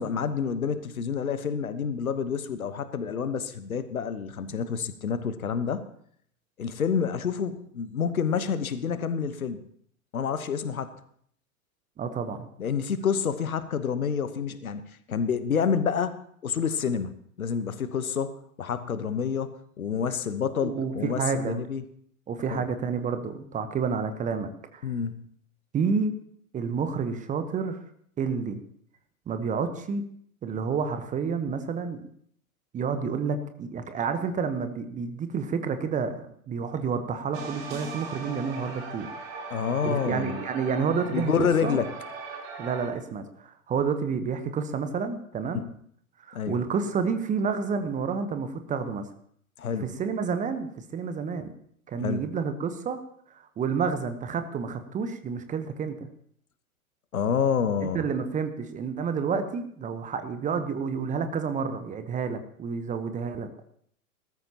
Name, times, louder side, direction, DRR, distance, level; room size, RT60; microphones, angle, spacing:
voice 1, 0.0-5.8 6.6-9.7 10.1-10.9 12.6-14.8 15.1-21.8 22.5-22.6 24.8-25.2 39.5-40.4 41.1-41.9 46.3-46.6 49.6-49.9 52.0-52.2 57.1-58.0, left 6 dB, 70° left, 12 dB, 1.2 m, -28 dB
voice 2, 12.0-12.5 20.6-21.6 22.3-24.9 25.7-26.2 26.5-27.8 28.2-28.6 29.3-30.0 30.4-32.1 32.7-41.8 42.6-45.7 46.2-49.1 49.8-51.5 51.9-53.0 53.3-56.1 57.8-63.6, right 5 dB, 15° right, 9 dB, 1.0 m, -30 dB
sound 1, 37.3-42.9, right 4 dB, 45° right, 3.6 m, -39 dB
20.0 x 13.5 x 2.9 m, 0.64 s
figure-of-eight pair, 100°, 43 cm